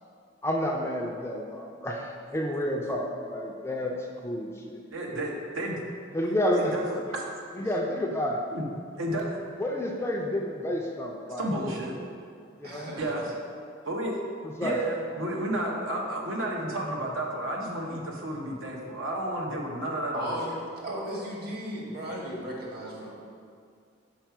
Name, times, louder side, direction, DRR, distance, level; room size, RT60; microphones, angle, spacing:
voice 1, 0.4-4.0 4.2-4.8 6.1-6.7 7.6-8.4 9.6-11.5 12.6-12.9 14.4-14.8, left 1 dB, 15° left, 0 dB, 0.4 m, -30 dB
voice 2, 4.9-5.8 6.5-7.2 8.5-8.7 9.0-9.4 11.4-12.0 13.0-13.3 13.9-14.2 14.6-20.4, right 1 dB, 75° right, -1 dB, 0.8 m, -31 dB
voice 3, 12.6-13.1 20.1-20.5 20.8-23.1, equal, 50° right, -4 dB, 1.4 m, -35 dB
5.9 x 4.7 x 4.5 m, 2.3 s
head